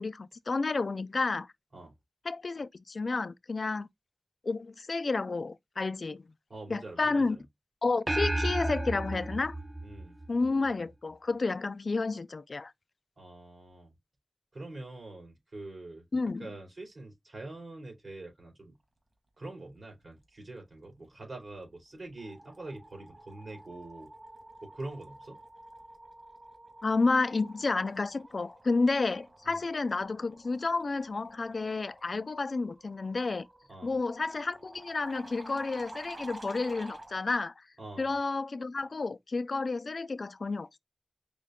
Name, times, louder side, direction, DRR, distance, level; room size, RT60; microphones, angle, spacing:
voice 1, 0.0-1.5 2.3-3.9 4.4-6.2 6.7-7.4 7.8-9.5 10.3-12.7 16.1-16.5 26.8-33.5 33.8-37.5 38.0-40.7, left 3 dB, 85° left, 0.3 m, -31 dB
voice 2, 6.5-7.4 9.8-10.2 13.2-13.9 14.5-16.0 16.4-18.7 19.4-24.1 24.6-25.4 29.4-29.6 33.7-34.0 37.8-38.1, right 2 dB, 75° right, 2.7 m, -44 dB
sound 1, 8.1-10.7, right 1 dB, 25° right, 0.4 m, -32 dB
sound 2, 21.3-21.6 21.9-37.2, right 1 dB, 50° right, 1.6 m, -51 dB
5.1 x 2.2 x 3.6 m
wide cardioid pair, 70°, 0 cm